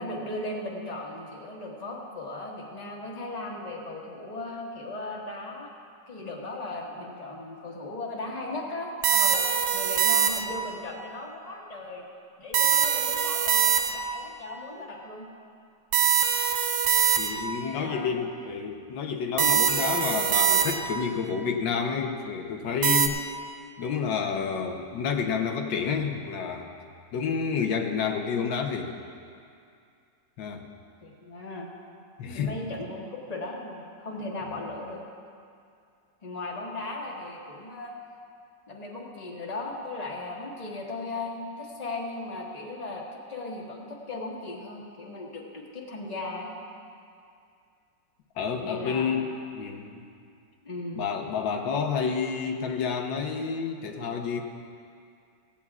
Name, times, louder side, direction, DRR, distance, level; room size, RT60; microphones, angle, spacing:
voice 1, 0.0-5.7 6.1-12.1 12.4-15.3 17.6-18.2 31.0-31.7 32.3-35.0 36.2-38.0 38.7-43.0 43.3-46.5 48.6-49.3 50.6-51.1, left 2 dB, 20° left, -3 dB, 1.6 m, -37 dB
sound 1, 9.0-10.7 12.5-14.2 15.9-17.6 19.4-21.1 22.8-23.1, right 8 dB, 90° right, 1.4 m, -23 dB
voice 2, 17.2-23.2 23.8-26.7 27.1-28.9 30.4-30.6 32.2-32.6 48.4-49.3 49.5-50.0 50.9-54.4, left 6 dB, 90° left, 3 dB, 1.6 m, -29 dB
17.5 x 15.5 x 2.4 m, 2.4 s
omnidirectional pair, 1.9 m